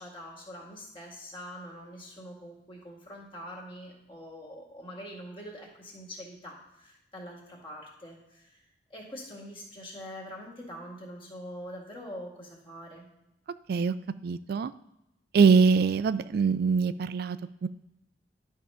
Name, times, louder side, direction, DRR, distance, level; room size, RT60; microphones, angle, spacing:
voice 1, 0.0-8.6 8.9-13.1, equal, 30° left, -1 dB, 2.0 m, -44 dB
voice 2, 14.2-14.7 15.3-17.7, right 5 dB, 60° right, 13 dB, 0.3 m, -23 dB
11.0 x 3.7 x 5.5 m, 0.88 s
head